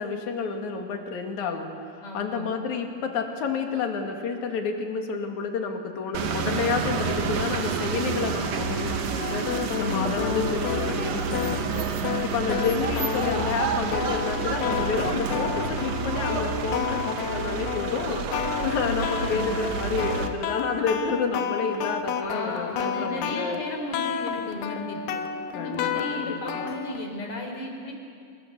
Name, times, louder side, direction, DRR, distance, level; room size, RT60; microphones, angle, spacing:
voice 1, 0.0-1.7 2.0-11.9 12.2-23.6 25.5-26.6, left 5 dB, 60° left, 3 dB, 3.4 m, -30 dB
voice 2, 2.0-2.5 19.1-19.8 22.2-25.2 25.5-27.9, left 1 dB, 40° left, 3 dB, 4.5 m, -35 dB
sound 1, 6.1-20.3, right 5 dB, 60° right, 2.3 m, -29 dB
sound 2, 9.2-27.2, left 8 dB, 90° left, 2.8 m, -31 dB
29.0 x 23.0 x 7.0 m, 2.4 s
omnidirectional pair, 3.9 m